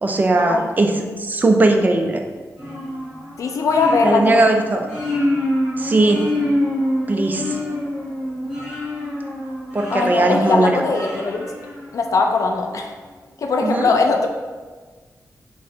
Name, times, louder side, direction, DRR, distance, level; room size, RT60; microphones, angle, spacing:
voice 1, 0.0-2.2 4.0-4.8 5.8-6.3 7.1-7.6 9.7-10.7 13.6-13.9, right 2 dB, 30° right, 4 dB, 0.4 m, -18 dB
sound 1, 2.6-12.4, left 1 dB, 5° right, 1.5 m, -26 dB
voice 2, 3.4-4.4 9.9-11.5 11.9-12.9 13.4-14.3, left 4 dB, 60° left, 2 dB, 0.4 m, -20 dB
3.7 x 3.2 x 4.3 m, 1.4 s
wide cardioid pair, 155°, 6 cm